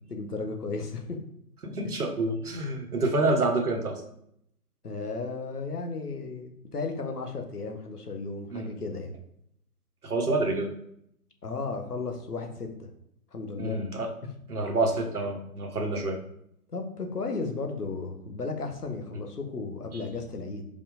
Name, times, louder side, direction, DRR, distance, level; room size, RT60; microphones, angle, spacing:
voice 1, 0.1-1.2 4.8-9.1 11.4-12.9 13.3-13.8 16.7-20.7, left 3 dB, 75° left, 4 dB, 1.7 m, -34 dB
voice 2, 1.6-4.0 8.5-8.7 10.0-10.7 13.6-14.1 14.5-16.2, right 2 dB, 70° right, 4 dB, 1.4 m, -27 dB
5.4 x 4.9 x 5.1 m, 0.74 s
figure-of-eight pair, 135°, 46 cm